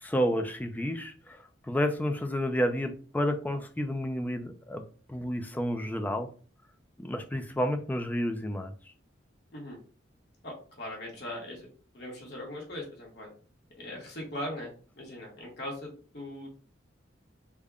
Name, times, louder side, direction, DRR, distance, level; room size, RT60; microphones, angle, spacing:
voice 1, 0.0-1.4 1.7-4.8 5.1-6.3 7.0-8.7, equal, 10° left, 6 dB, 0.3 m, -30 dB
voice 2, 10.4-11.7 11.9-13.3 13.8-16.5, left 1 dB, 55° left, -2 dB, 1.1 m, -40 dB
3.5 x 2.1 x 3.6 m, 0.40 s
head